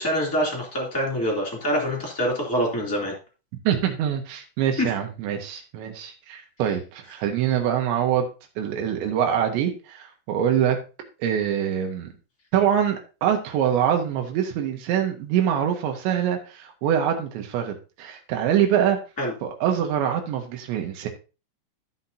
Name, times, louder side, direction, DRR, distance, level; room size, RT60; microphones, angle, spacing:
voice 1, 0.0-3.1 4.8-4.9 19.2-19.3, equal, 5° left, -2 dB, 1.8 m, -25 dB
voice 2, 3.7-8.3 8.6-10.8 11.2-12.1 12.5-19.0 19.4-21.1, right 9 dB, 85° right, 4 dB, 3.6 m, -24 dB
14.0 x 5.9 x 2.8 m, 0.31 s
omnidirectional pair, 5.1 m